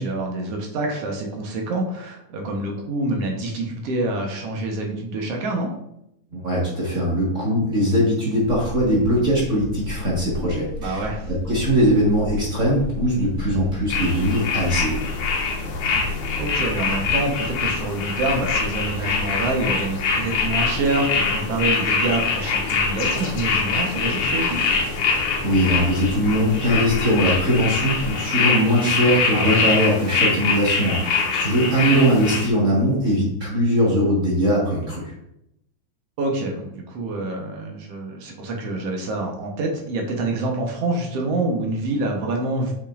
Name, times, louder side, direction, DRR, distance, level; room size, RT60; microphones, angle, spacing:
voice 1, 0.0-5.7 10.8-11.3 15.9-16.1 16.4-24.6 29.3-29.7 36.2-42.7, right 2 dB, 65° right, 1 dB, 1.9 m, -26 dB
voice 2, 6.3-15.0 25.4-35.1, equal, 35° right, -5 dB, 1.4 m, -21 dB
sound 1, 8.4-28.2, left 3 dB, 30° left, 2.1 m, -33 dB
sound 2, 13.9-32.5, left 4 dB, 75° left, 2.5 m, -24 dB
8.5 x 5.4 x 2.5 m, 0.79 s
omnidirectional pair, 3.4 m